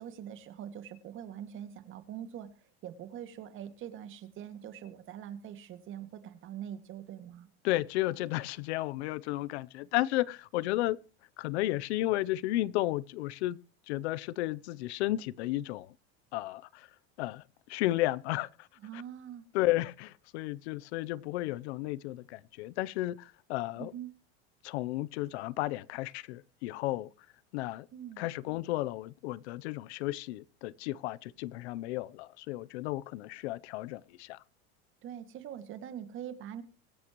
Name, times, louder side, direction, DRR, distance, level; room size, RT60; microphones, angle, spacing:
voice 1, 0.0-7.5 18.8-19.4 23.8-24.1 27.9-28.2 35.0-36.6, right 9 dB, 35° right, 2.1 m, -43 dB
voice 2, 7.6-11.0 11.4-13.6 13.9-15.9 16.3-16.9 17.2-18.7 18.9-19.0 19.5-23.9 24.6-27.1 27.5-27.9 28.2-34.4, left 17 dB, 80° left, 0.7 m, -33 dB
24.5 x 8.6 x 3.0 m
supercardioid pair, 145°, 33 cm